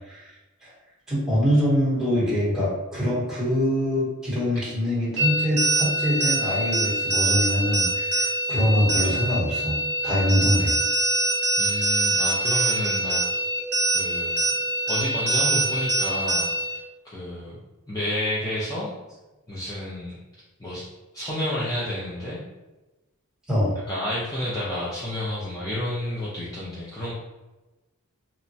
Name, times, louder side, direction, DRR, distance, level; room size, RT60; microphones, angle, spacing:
voice 1, 1.1-9.8 10.0-10.8 23.5-23.8, equal, 5° right, -8 dB, 1.0 m, -24 dB
sound 1, 5.2-16.8, right 1 dB, 50° right, 0.7 m, -24 dB
voice 2, 11.6-13.2 13.9-14.5 14.9-17.6 17.9-18.9 19.5-20.2 20.6-20.9 21.1-22.4 23.9-27.1, left 1 dB, 15° left, -9 dB, 0.4 m, -30 dB
2.9 x 2.2 x 2.6 m, 1.1 s
head